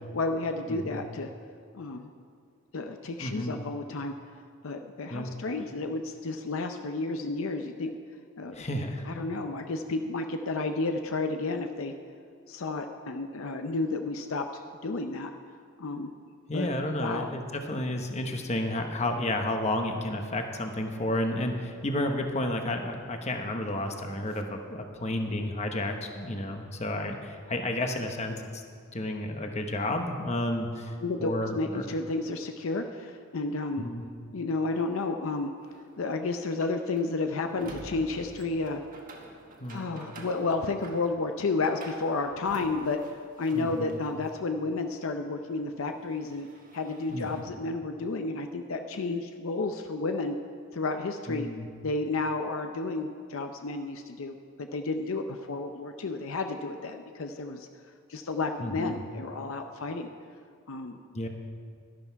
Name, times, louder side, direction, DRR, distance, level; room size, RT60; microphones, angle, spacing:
voice 1, 0.1-1.3 1.7-2.1 2.7-4.1 4.6-7.9 8.4-8.6 9.0-11.9 12.5-15.3 15.8-16.1 16.5-16.7 17.0-17.3 31.0-33.8 34.3-35.5 36.0-38.8 39.7-43.0 43.4-46.5 46.7-50.4 50.7-51.5 51.8-57.7 58.1-60.1 60.7-61.0, left 3 dB, 70° left, 6 dB, 0.6 m, -31 dB
voice 2, 0.7-1.0 3.2-3.5 5.1-5.3 8.5-9.1 16.5-28.6 28.9-30.9 31.2-31.8 33.8-34.0 39.6-39.9 43.5-44.0 47.1-47.3 47.5-47.6 51.3-51.7 58.6-59.0 61.1-61.3, left 1 dB, 30° left, 5 dB, 1.0 m, -31 dB
sound 1, 35.6-44.3 44.7-47.4, right 2 dB, 40° right, 1.3 m, -50 dB
12.0 x 11.5 x 4.6 m, 2.3 s
head